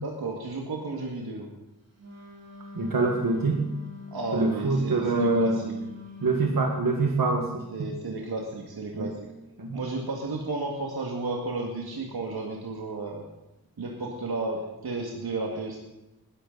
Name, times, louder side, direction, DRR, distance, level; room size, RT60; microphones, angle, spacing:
voice 1, 0.0-1.5 4.1-5.7 7.7-9.3 9.7-13.2 13.8-15.8, right 3 dB, 80° right, -1 dB, 2.0 m, -33 dB
Wind instrument woodwind instrument, 2.0-6.7, left 5 dB, 45° right, 2.8 m, -44 dB
voice 2, 2.7-3.6 4.3-5.6 6.2-7.9 8.9-9.1 9.6-9.8, right 3 dB, 60° right, 1 dB, 1.7 m, -25 dB
19.5 x 11.5 x 4.0 m, 0.95 s
wide cardioid pair, 70°, 37 cm